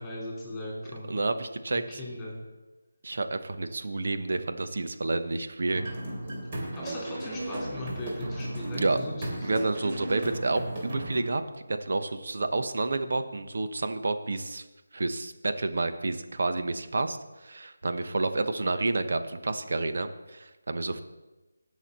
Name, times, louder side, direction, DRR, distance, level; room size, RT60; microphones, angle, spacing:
voice 1, 0.0-1.2 1.7-2.4 6.8-9.5, left 1 dB, 10° left, -6 dB, 4.0 m, -38 dB
voice 2, 1.1-1.8 3.0-5.8 8.8-9.0 9.4-11.4 11.7-14.6 14.9-17.2 17.4-21.0, right 2 dB, 60° right, 8 dB, 1.0 m, -29 dB
sound 1, 5.7-11.2, right 1 dB, 35° right, 3.0 m, -35 dB
17.5 x 6.4 x 4.2 m, 1.1 s
figure-of-eight pair, 165°, 0 cm